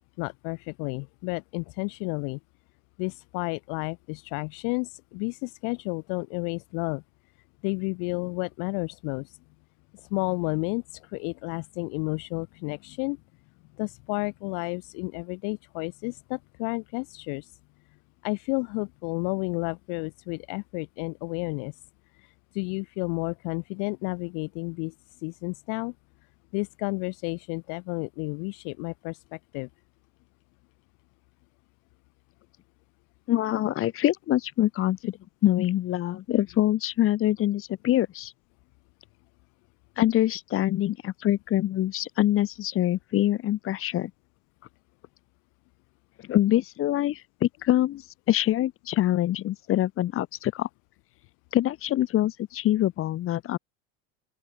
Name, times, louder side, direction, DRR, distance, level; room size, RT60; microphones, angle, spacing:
voice 1, 0.2-2.4 3.0-7.0 7.6-9.4 10.0-13.2 13.8-17.5 18.2-21.7 22.5-24.9 25.2-25.9 26.5-29.7, left 39 dB, 60° left, 2.1 m, -31 dB
voice 2, 33.3-35.2 35.4-38.3 40.0-44.1 46.3-48.0 48.3-50.7 51.5-53.6, left 13 dB, 35° left, 3.9 m, -25 dB
open air
cardioid pair, 155°, 36 cm